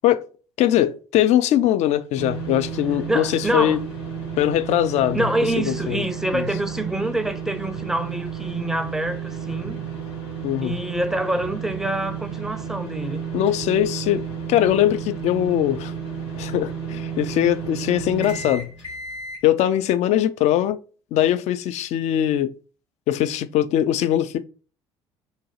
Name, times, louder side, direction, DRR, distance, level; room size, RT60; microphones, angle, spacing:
voice 1, 0.6-3.8 4.4-5.2 5.6-6.0 6.3-6.4 10.4-10.8 13.3-15.9 16.4-18.7 19.4-20.8 21.1-22.5 23.1-24.4, left 12 dB, 50° left, 0.4 m, -21 dB
sound 1, 2.1-19.4, right 7 dB, 90° left, 1.6 m, -32 dB
voice 2, 3.1-3.8 5.1-9.8 10.6-13.2, right 1 dB, 5° right, 0.5 m, -26 dB
3.0 x 2.6 x 3.9 m
figure-of-eight pair, 55°, 14 cm